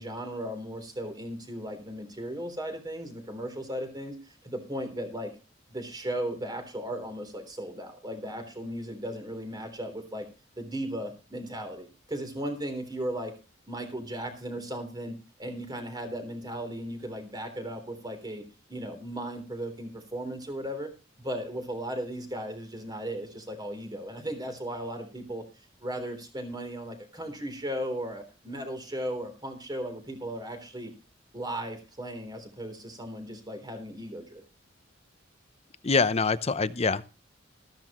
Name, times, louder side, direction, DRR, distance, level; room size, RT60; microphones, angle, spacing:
voice 1, 0.0-4.2 4.4-5.3 5.7-10.3 10.6-13.3 13.7-18.4 18.7-20.9 21.2-25.4 25.8-30.9 31.3-34.4, right 1 dB, 20° right, 6 dB, 3.6 m, -36 dB
voice 2, 35.8-37.0, left 4 dB, 35° left, 14 dB, 0.7 m, -24 dB
14.5 x 13.5 x 3.1 m, 0.31 s
head